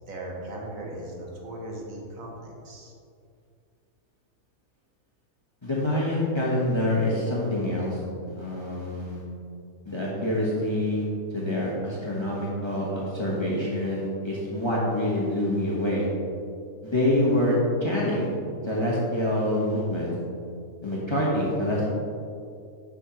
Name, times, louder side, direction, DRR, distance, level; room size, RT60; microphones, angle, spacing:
voice 1, 0.1-2.9, right 1 dB, 65° right, -1 dB, 1.4 m, -38 dB
voice 2, 5.6-8.0 8.3-9.2 9.8-11.0 11.3-16.1 16.8-18.3 18.6-20.1 20.8-21.9, left 1 dB, 20° left, -6 dB, 1.0 m, -26 dB
6.8 x 6.2 x 2.9 m, 2.4 s
omnidirectional pair, 1.6 m